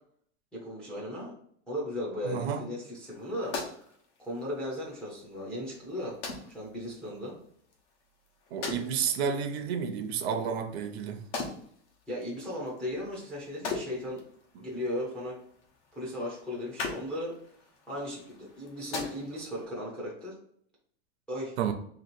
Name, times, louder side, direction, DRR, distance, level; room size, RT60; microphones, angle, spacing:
voice 1, 0.5-1.3 1.7-3.9 4.2-6.2 6.5-7.4 12.1-14.2 14.6-15.4 15.9-17.3 17.9-20.4 21.3-21.5, left 1 dB, 5° left, 0.5 m, -36 dB
voice 2, 2.2-2.6 8.5-11.2 14.6-14.7 21.6-21.7, right 7 dB, 60° right, 0.6 m, -31 dB
sound 1, 3.0-19.6, left 4 dB, 70° left, 1.2 m, -43 dB
3.0 x 2.8 x 4.2 m
supercardioid pair, 170°, 35 cm